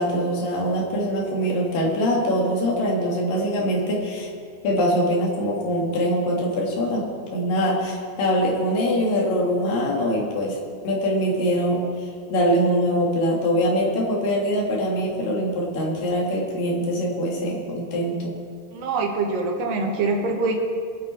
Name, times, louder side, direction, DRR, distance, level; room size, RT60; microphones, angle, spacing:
voice 1, 0.0-4.3 4.6-7.1 7.3-10.6 10.8-18.3, equal, 55° left, -2 dB, 3.5 m, -23 dB
voice 2, 18.7-20.6, right 3 dB, 65° right, 2 dB, 2.5 m, -24 dB
22.0 x 8.9 x 4.5 m, 2.2 s
omnidirectional pair, 5.1 m